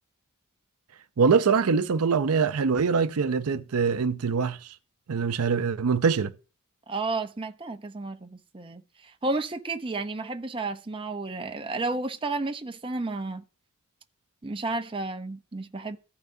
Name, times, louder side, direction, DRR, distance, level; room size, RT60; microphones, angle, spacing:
voice 1, 1.2-4.7 5.1-6.3, right 5 dB, 80° right, 0.5 m, -23 dB
voice 2, 6.9-13.4 14.4-16.0, right 3 dB, 25° right, 0.7 m, -32 dB
15.0 x 5.7 x 2.6 m
head